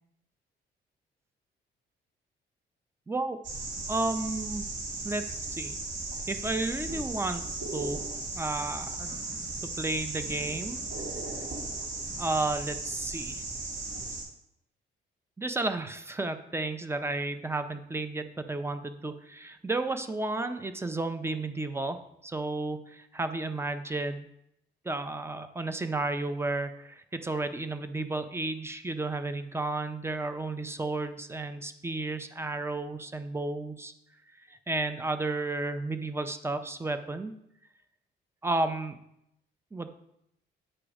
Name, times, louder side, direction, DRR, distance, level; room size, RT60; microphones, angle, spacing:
voice 1, 3.1-3.4 3.9-4.6 5.0-5.8 6.3-7.4 7.7-8.0 8.3-9.2 9.6-10.8 12.2-13.4 15.4-24.3 24.8-33.9 34.5-37.3 38.4-39.0 39.7-39.9, right 2 dB, 10° right, 9 dB, 0.6 m, -32 dB
sound 1, 3.4-14.2, right 3 dB, 65° right, 2.8 m, -36 dB
8.7 x 3.0 x 4.9 m, 0.78 s
cardioid pair, 90°, 20 cm